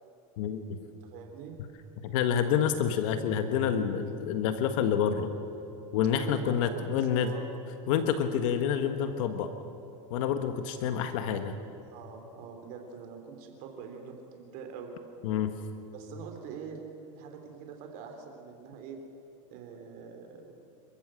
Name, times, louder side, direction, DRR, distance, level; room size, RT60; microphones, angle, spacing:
voice 1, 0.4-0.8 2.0-5.3 5.9-7.3 7.9-9.5 10.1-11.5 15.2-15.5, left 8 dB, 70° left, 8 dB, 1.5 m, -28 dB
voice 2, 1.0-1.6 6.1-7.5 11.8-14.9 15.9-16.8 17.1-19.0 19.5-20.6, right 6 dB, 55° right, 4 dB, 3.4 m, -44 dB
27.5 x 14.5 x 7.7 m, 2.8 s
supercardioid pair, 130°, 17 cm